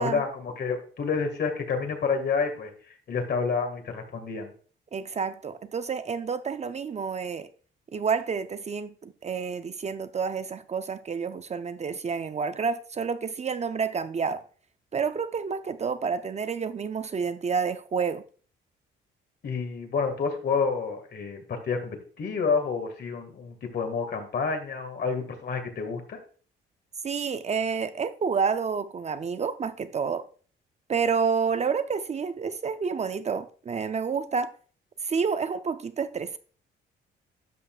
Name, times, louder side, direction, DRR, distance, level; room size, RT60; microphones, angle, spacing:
voice 1, 0.0-2.7 3.1-4.5 19.4-26.2, left 5 dB, 55° left, 2.0 m, -29 dB
voice 2, 4.9-7.5 7.9-14.4 14.9-18.2 27.0-30.3 30.9-34.5 35.0-36.4, right 5 dB, 35° right, 0.5 m, -29 dB
12.0 x 5.8 x 2.4 m
cardioid pair, 90°, 20 cm